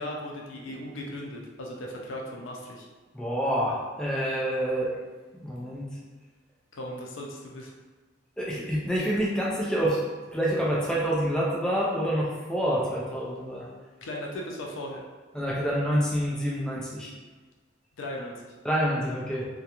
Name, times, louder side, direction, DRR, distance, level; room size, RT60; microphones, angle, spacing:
voice 1, 0.0-2.9 6.7-7.7 14.0-15.0 18.0-18.5, left 1 dB, 85° left, -1 dB, 0.5 m, -37 dB
voice 2, 3.1-4.9 5.4-5.9 8.4-10.0 10.3-13.7 15.3-17.1 18.6-19.4, equal, 5° left, -5 dB, 0.4 m, -27 dB
2.4 x 2.2 x 2.8 m, 1.3 s
head